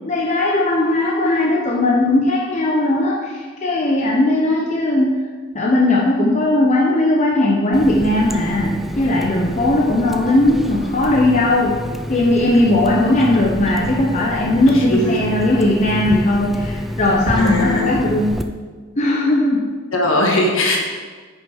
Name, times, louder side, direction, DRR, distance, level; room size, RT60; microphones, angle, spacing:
voice 1, 0.0-5.2 5.5-11.8 12.1-18.3 19.0-19.7, left 1 dB, 35° left, -3 dB, 0.9 m, -17 dB
Water tap faucet, 7.7-18.4, equal, ahead, 0.4 m, -28 dB
voice 2, 14.7-15.4 17.4-18.0 19.9-20.8, left 1 dB, 60° left, 0 dB, 1.8 m, -20 dB
10.5 x 6.3 x 4.6 m, 1.5 s
head